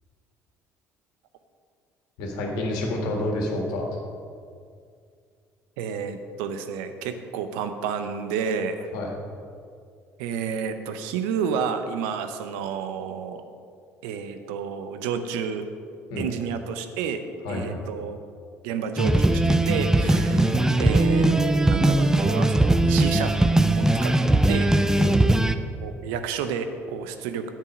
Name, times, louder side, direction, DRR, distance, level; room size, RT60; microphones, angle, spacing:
voice 1, 2.2-3.8 8.9-9.2 16.1-16.3 17.4-17.9 20.0-20.7 25.0-25.4, left 1 dB, 65° left, 0 dB, 1.9 m, -29 dB
voice 2, 5.8-8.9 10.2-13.4 14.0-15.7 16.2-17.2 17.5-18.2 18.6-24.1 24.5-24.7 25.8-27.5, right 6 dB, 70° right, 8 dB, 0.7 m, -30 dB
sound 1, 19.0-25.5, right 1 dB, 5° right, 0.5 m, -20 dB
9.6 x 7.5 x 5.2 m, 2.3 s
figure-of-eight pair, 55°, 8 cm